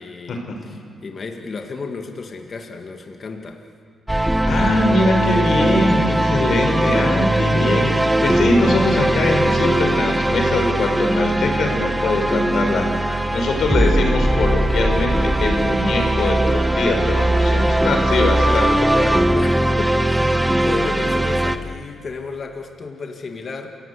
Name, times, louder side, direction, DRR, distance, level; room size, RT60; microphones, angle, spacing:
voice 1, 0.0-3.6 18.5-23.8, left 4 dB, 50° left, 4 dB, 2.0 m, -33 dB
sound 1, 4.1-21.6, right 1 dB, 10° right, 1.2 m, -19 dB
voice 2, 4.4-18.9, left 2 dB, 70° left, 3 dB, 4.9 m, -22 dB
28.5 x 17.0 x 8.3 m, 2.2 s
cardioid pair, 70°, 0 cm